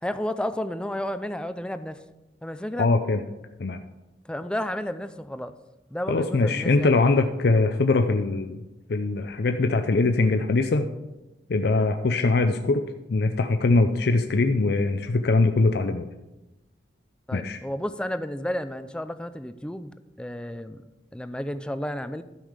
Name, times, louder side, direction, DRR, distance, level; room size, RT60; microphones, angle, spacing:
voice 1, 0.0-2.0 2.4-2.9 4.3-5.6 5.9-6.9 17.3-20.8 21.1-22.2, left 1 dB, 5° left, 11 dB, 0.4 m, -32 dB
voice 2, 2.8-3.2 3.6-3.8 6.1-8.6 8.9-10.9 11.5-16.1 17.3-17.6, left 3 dB, 65° left, 7 dB, 0.5 m, -22 dB
12.0 x 5.5 x 5.0 m, 1.0 s
head